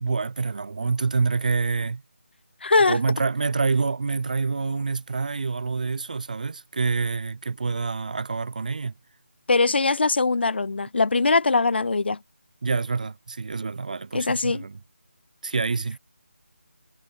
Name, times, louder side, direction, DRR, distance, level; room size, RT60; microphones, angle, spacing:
voice 1, 0.0-2.0 2.9-8.9 12.6-14.8 15.4-16.0, right 4 dB, 40° right, 0.5 m, -27 dB
voice 2, 2.6-3.0 9.5-12.2 14.1-14.7, left 3 dB, 55° left, 1.3 m, -21 dB
figure-of-eight pair, 170°, 7 cm